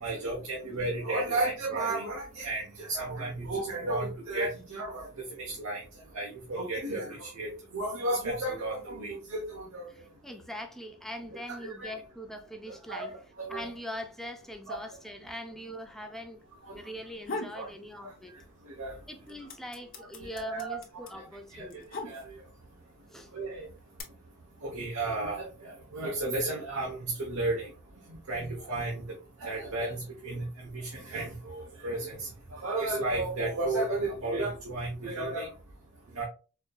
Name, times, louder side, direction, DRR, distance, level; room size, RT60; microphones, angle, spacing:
voice 1, 0.0-5.1 5.4-5.8 6.1-9.9 11.5-11.9 12.7-13.0 13.4-13.7 14.7-14.8 17.5-17.7 18.8-18.9 20.3-21.1 21.5-21.7 22.1-22.2 23.3-23.7 24.6-27.7 28.3-28.9 29.4-30.4 30.7-32.3 32.6-35.5 36.2-36.3, right 2 dB, 80° right, 0.9 m, -33 dB
voice 2, 9.9-13.1 13.5-18.3 19.1-21.9 23.1-23.3, left 1 dB, ahead, 0.5 m, -42 dB
sound 1, 17.0-17.6 18.0-18.7 19.0-22.6 23.4-24.0, left 3 dB, 45° left, 0.8 m, -39 dB
4.3 x 2.7 x 2.2 m
head